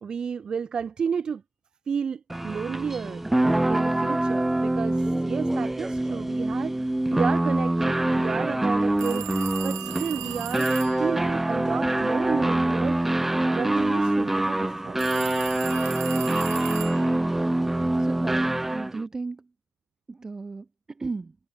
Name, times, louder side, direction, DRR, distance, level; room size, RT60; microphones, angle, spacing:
voice 1, 0.0-1.4 1.9-3.2 3.7-9.3 9.6-13.1 13.5-15.0, right 6 dB, 40° right, 0.8 m, -32 dB
sound 1, 2.3-19.0, right 1 dB, 10° right, 0.3 m, -25 dB
sound 2, 9.0-11.1 15.0-17.2, right 18 dB, 80° right, 0.9 m, -37 dB
voice 2, 18.0-19.5 20.1-21.4, right 3 dB, 25° right, 1.3 m, -36 dB
hypercardioid pair, 50°, 2 cm